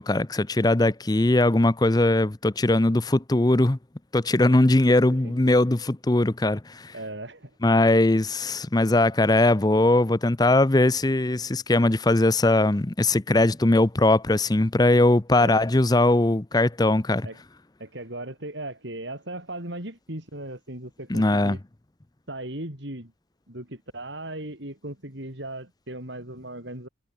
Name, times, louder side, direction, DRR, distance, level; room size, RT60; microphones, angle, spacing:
voice 1, 0.0-3.8 4.1-6.9 7.6-17.3 21.1-21.6, left 2 dB, 20° left, 0.6 m, -20 dB
voice 2, 6.9-7.5 15.4-15.6 17.2-17.4 17.8-21.6 22.3-23.1 23.5-26.9, right 1 dB, 65° right, 5.3 m, -37 dB
head